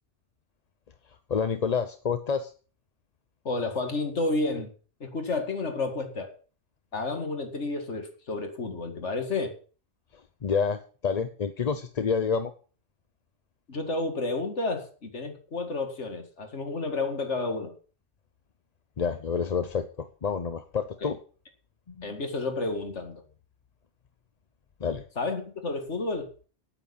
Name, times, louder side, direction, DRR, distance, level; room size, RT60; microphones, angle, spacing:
voice 1, 1.3-2.5 10.4-12.5 19.0-21.2 21.9-22.1 24.8-25.0, left 6 dB, 40° left, 9 dB, 0.7 m, -28 dB
voice 2, 3.4-4.7 5.0-6.3 6.9-9.5 13.7-17.7 21.0-21.1 22.0-23.2 25.2-26.3, left 3 dB, 80° left, 6 dB, 2.4 m, -31 dB
9.2 x 9.1 x 7.1 m, 0.39 s
omnidirectional pair, 1.2 m